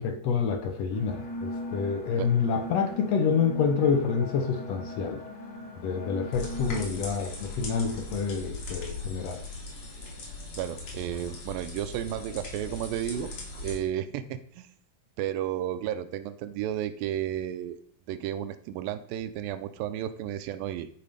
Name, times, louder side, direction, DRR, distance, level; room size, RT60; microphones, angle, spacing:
voice 1, 0.0-5.2 5.8-9.4, left 6 dB, 75° left, 1.5 m, -27 dB
sound 1, 0.9-6.8, left 1 dB, 35° left, 2.0 m, -39 dB
sound 2, 6.3-13.8, left 2 dB, 50° left, 3.3 m, -39 dB
voice 2, 10.5-13.3 13.6-14.7 15.2-17.8 18.1-20.9, right 11 dB, 90° right, 2.4 m, -33 dB
11.0 x 4.9 x 5.1 m
omnidirectional pair, 4.0 m